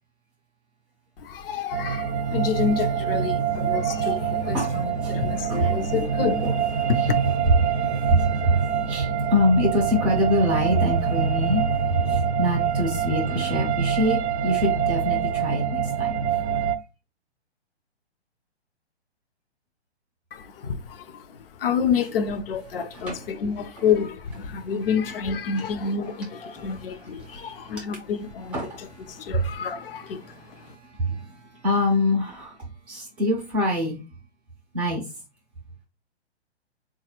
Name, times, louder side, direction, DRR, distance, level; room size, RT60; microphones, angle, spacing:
voice 1, 1.2-6.5 6.9-7.4 20.3-30.7, left 6 dB, 55° left, 0.6 m, -29 dB
sound 1, 1.7-16.8, right 7 dB, 75° right, 0.5 m, -25 dB
voice 2, 7.6-11.6 11.9-16.1 23.1-23.2 24.6-24.7 27.2-27.7 28.5-29.4 30.2-32.6 32.9-34.0 34.7-35.0, equal, 5° right, 0.3 m, -25 dB
4.0 x 2.4 x 2.9 m
figure-of-eight pair, 120°, 33 cm